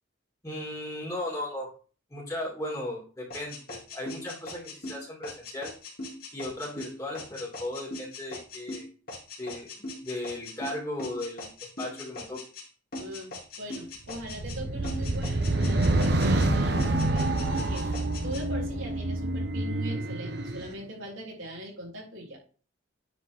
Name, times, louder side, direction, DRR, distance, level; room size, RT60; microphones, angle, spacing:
voice 1, 0.4-1.7 2.1-5.7 6.3-8.9 9.4-9.7 10.0-11.5 11.8-12.4, left 1 dB, 15° left, -3 dB, 2.9 m, -36 dB
sound 1, 3.3-12.7 12.9-14.6 14.8-16.5 16.8-18.4, left 2 dB, 50° left, 2.9 m, -40 dB
voice 2, 12.9-17.9 18.2-22.4, equal, 85° right, -3 dB, 3.5 m, -41 dB
sound 2, 14.2-20.7, right 2 dB, 55° right, 0.9 m, -27 dB
9.7 x 4.4 x 3.7 m, 0.38 s
head